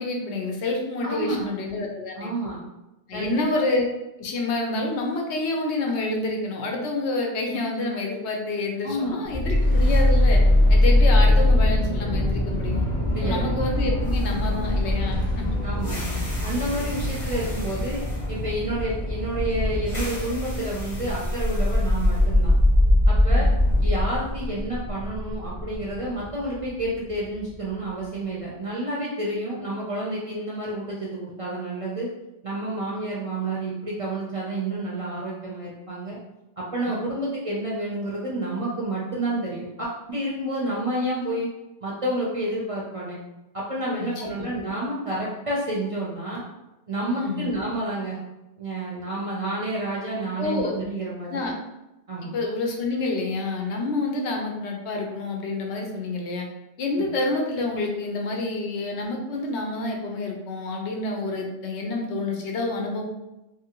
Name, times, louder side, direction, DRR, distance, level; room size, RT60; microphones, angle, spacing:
voice 1, 0.0-2.3 3.1-3.9 4.2-10.4 10.7-12.9 13.2-15.5 16.8-17.0 23.2-23.5 37.0-37.1 44.0-44.5 47.2-47.5 50.4-50.7 51.3-51.5 52.3-56.5 56.8-63.0, left 2 dB, 80° left, 1 dB, 0.9 m, -28 dB
voice 2, 1.0-1.5 2.2-2.6 3.1-3.4 8.8-9.3 13.1-13.5 15.6-16.1 16.4-18.0 18.3-22.5 23.1-23.5 23.8-32.1 32.4-36.2 36.6-41.5 41.8-43.2 43.5-46.4 46.9-48.2 48.6-51.4 52.1-52.3 57.0-57.1, right 1 dB, 45° right, -5 dB, 0.4 m, -29 dB
sound 1, 9.3-27.4, left 1 dB, 40° left, 0.9 m, -22 dB
2.6 x 2.6 x 2.9 m, 0.96 s
omnidirectional pair, 1.1 m